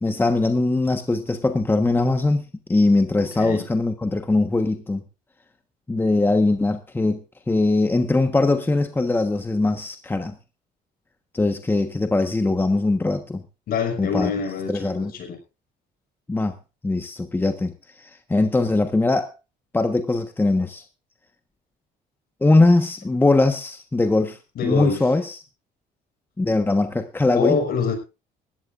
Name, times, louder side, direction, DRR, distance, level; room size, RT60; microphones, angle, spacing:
voice 1, 0.0-2.4 2.7-5.0 5.9-7.2 7.5-10.4 11.3-13.4 14.0-14.3 14.7-15.1 16.3-16.5 16.8-17.7 18.0-19.3 19.7-20.8 22.4-25.4 26.4-27.6, left 2 dB, 10° left, 7 dB, 1.3 m, -21 dB
voice 2, 3.2-3.7 13.7-15.4 24.6-25.0 27.3-27.9, left 6 dB, 60° left, 5 dB, 5.3 m, -25 dB
19.5 x 15.0 x 2.5 m, 0.29 s
cardioid pair, 110°, 17 cm